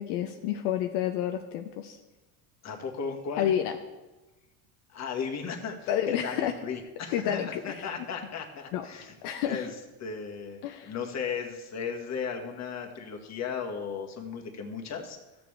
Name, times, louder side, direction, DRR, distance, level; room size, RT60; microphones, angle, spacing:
voice 1, 0.0-2.0 3.4-3.7 5.9-6.6 7.1-7.7 8.7-8.9 9.2-9.7 10.6-10.9, left 10 dB, 75° left, 5 dB, 0.8 m, -29 dB
voice 2, 2.6-3.5 4.9-9.7 10.0-15.2, left 6 dB, 35° left, 2 dB, 1.6 m, -36 dB
14.0 x 6.9 x 3.3 m, 1.1 s
supercardioid pair, 105°, 46 cm